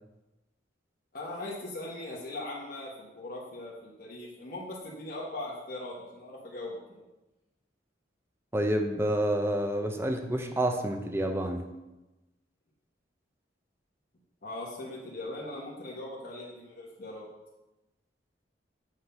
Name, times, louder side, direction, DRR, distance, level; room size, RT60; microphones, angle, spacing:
voice 1, 1.1-7.0 14.4-17.3, left 2 dB, 55° left, -5 dB, 1.4 m, -40 dB
voice 2, 8.5-11.6, right 1 dB, 15° right, 5 dB, 0.6 m, -28 dB
7.9 x 3.9 x 5.6 m, 1.0 s
head